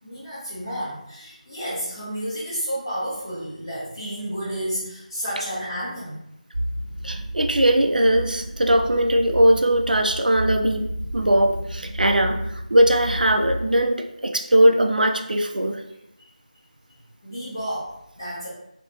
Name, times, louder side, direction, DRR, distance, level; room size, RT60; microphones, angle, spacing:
voice 1, 0.0-6.2 17.2-18.5, equal, 25° left, -12 dB, 1.2 m, -31 dB
sound 1, 6.5-13.6, equal, 35° right, 1.1 m, -32 dB
voice 2, 7.0-15.8, right 1 dB, 85° right, 4 dB, 0.5 m, -20 dB
3.2 x 2.9 x 2.8 m, 0.81 s
figure-of-eight pair, 170°, 4 cm